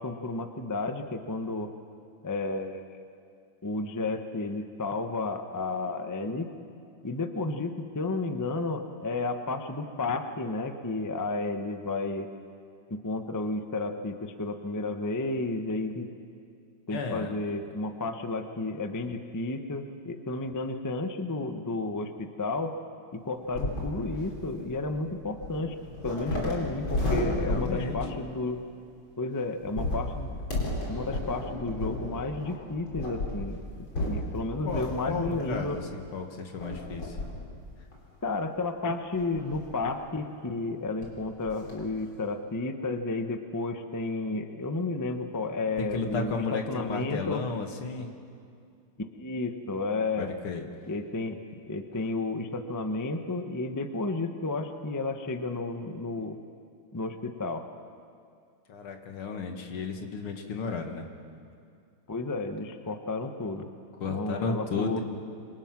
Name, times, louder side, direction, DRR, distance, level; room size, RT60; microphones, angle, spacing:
voice 1, 0.0-1.7 2.2-2.8 3.6-6.5 7.0-12.3 12.9-16.1 16.9-22.7 23.1-25.8 26.0-28.6 29.2-30.4 30.9-33.6 34.1-35.8 38.2-47.4 49.0-50.3 50.9-51.4 51.7-56.4 56.9-57.6 62.1-63.7 64.1-65.0, left 3 dB, 15° left, 7 dB, 0.6 m, -32 dB
voice 2, 16.9-17.3 27.2-28.0 34.6-37.2 45.8-48.1 50.2-50.6 58.7-61.1 64.0-65.0, left 4 dB, 80° left, 4 dB, 2.7 m, -33 dB
sound 1, 23.5-28.3 29.6-35.9 36.6-37.5 37.9-38.0 39.1-39.8 40.7-40.8 41.0-41.1 41.5-41.8, left 1 dB, 65° left, 4.9 m, -33 dB
27.0 x 25.5 x 6.1 m, 2.4 s
omnidirectional pair, 2.4 m